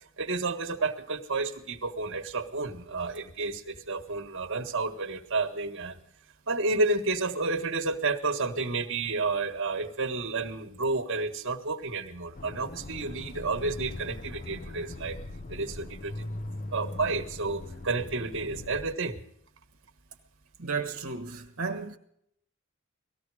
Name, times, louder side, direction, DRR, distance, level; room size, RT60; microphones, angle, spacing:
voice 1, 0.2-6.0 6.5-15.2 15.5-16.3 16.7-19.2, right 3 dB, 65° right, 1.5 m, -31 dB
Accelerating revving vroom, 12.3-18.9, left 2 dB, 40° left, 0.7 m, -40 dB
voice 2, 20.6-22.0, right 4 dB, 80° right, 1.3 m, -33 dB
18.5 x 15.0 x 4.9 m
head